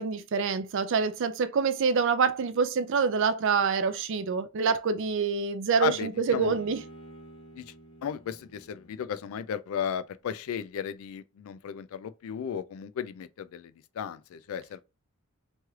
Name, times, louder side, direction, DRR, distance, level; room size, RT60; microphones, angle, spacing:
voice 1, 0.0-6.8, right 5 dB, 60° right, 0.4 m, -26 dB
voice 2, 5.8-6.6 7.5-7.6 8.0-14.8, left 8 dB, 70° left, 0.3 m, -35 dB
Bowed string instrument, 6.3-9.5, right 1 dB, 25° left, 1.0 m, -50 dB
3.1 x 3.0 x 2.3 m
head